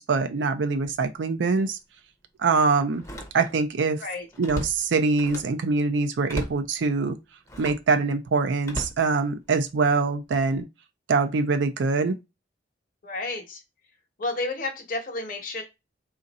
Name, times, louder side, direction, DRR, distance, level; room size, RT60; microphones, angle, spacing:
voice 1, 0.0-1.8 2.4-3.0 3.3-4.0 4.4-7.2 7.6-10.6 11.1-12.2, right 4 dB, 75° right, 0.4 m, -24 dB
Slam, 0.8-1.0 1.5-1.6 2.9-3.7 4.1-5.6 6.3-6.7 7.4-7.9 8.6-9.7 10.3-10.6, equal, 15° left, 0.7 m, -37 dB
voice 2, 13.0-13.6 14.2-15.6, left 2 dB, 45° left, 0.9 m, -31 dB
3.7 x 2.5 x 4.0 m
head